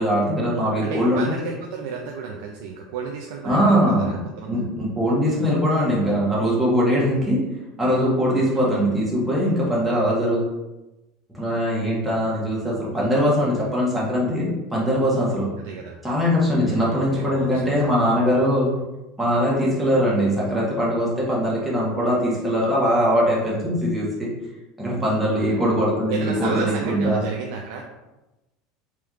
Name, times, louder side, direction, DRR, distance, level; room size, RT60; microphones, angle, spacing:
voice 1, 0.0-1.3 3.4-4.1 4.5-7.4 7.8-10.4 11.3-15.5 16.0-18.7 19.2-24.3 24.8-27.2, equal, 5° right, -6 dB, 1.3 m, -21 dB
voice 2, 0.8-4.6 8.3-8.7 15.6-16.0 16.6-17.9 25.3-25.6 26.1-27.8, right 5 dB, 75° right, 0 dB, 0.5 m, -32 dB
3.5 x 3.1 x 3.6 m, 1.0 s
supercardioid pair, 140°, 0 cm